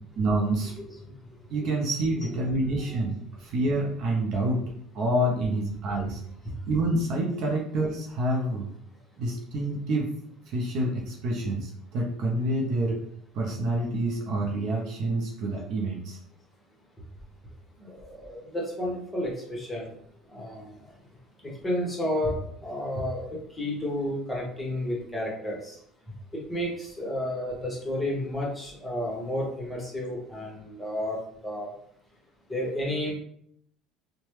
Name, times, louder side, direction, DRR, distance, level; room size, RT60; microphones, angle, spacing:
voice 1, 0.2-0.7 1.5-4.6 4.9-6.2 6.7-8.7 9.2-10.1 10.5-13.0 13.3-16.2, right 1 dB, 60° right, 0 dB, 0.6 m, -27 dB
voice 2, 2.2-3.0 17.8-19.9 20.3-20.7 21.4-23.2 23.6-25.8 26.5-31.2 31.4-31.7 32.5-33.1, left 1 dB, 5° left, -3 dB, 1.2 m, -31 dB
2.9 x 2.2 x 3.1 m, 0.67 s
supercardioid pair, 110°, 0 cm